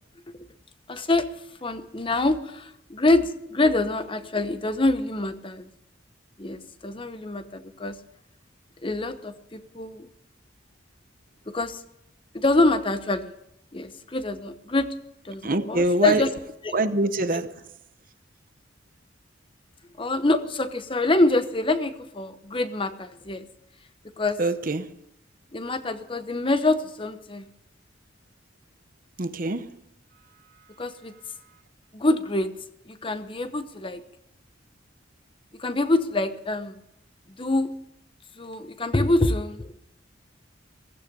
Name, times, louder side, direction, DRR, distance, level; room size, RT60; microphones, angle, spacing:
voice 1, 0.9-1.3 1.6-5.7 6.4-8.0 8.8-10.1 11.5-11.8 12.3-13.3 13.7-14.9 15.2-16.3 16.6-16.7 17.3-17.4 20.0-23.5 24.2-24.4 25.5-27.5 30.8-31.1 31.9-32.5 32.9-34.0 35.5-36.8 37.4-37.7 38.4-39.7, left 2 dB, 25° left, 0.9 m, -25 dB
voice 2, 15.4-16.2 16.7-17.5 24.4-24.9 29.2-29.8, right 2 dB, 45° right, 0.9 m, -24 dB
15.5 x 15.0 x 5.4 m
head